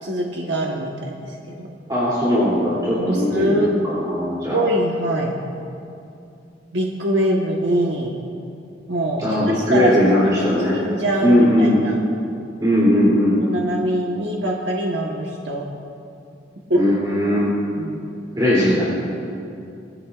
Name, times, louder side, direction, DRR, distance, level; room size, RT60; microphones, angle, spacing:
voice 1, 0.0-1.7 3.0-3.7 4.5-5.4 6.7-8.1 8.9-10.0 10.3-10.4 10.7-12.0 13.4-15.6 16.7-16.8 17.8-18.1, right 1 dB, 80° right, -2 dB, 1.3 m, -23 dB
voice 2, 1.9-4.6 9.2-10.8 11.2-11.8 12.6-13.4 16.8-17.4 18.3-18.8, left 1 dB, 20° right, -9 dB, 3.0 m, -18 dB
21.0 x 14.5 x 2.5 m, 2.6 s
head